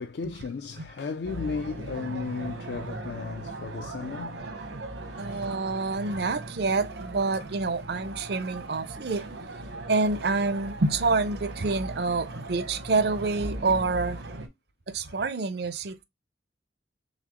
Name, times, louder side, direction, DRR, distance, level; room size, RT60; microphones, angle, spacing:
voice 1, 0.0-5.7 6.1-6.2 15.0-15.3, left 5 dB, 65° left, 0.4 m, -36 dB
sound 1, 1.2-14.5, right 2 dB, 80° right, 1.2 m, -38 dB
voice 2, 5.2-9.3 9.9-14.2 14.9-16.0, right 3 dB, 60° right, 0.5 m, -27 dB
4.0 x 3.5 x 3.0 m
head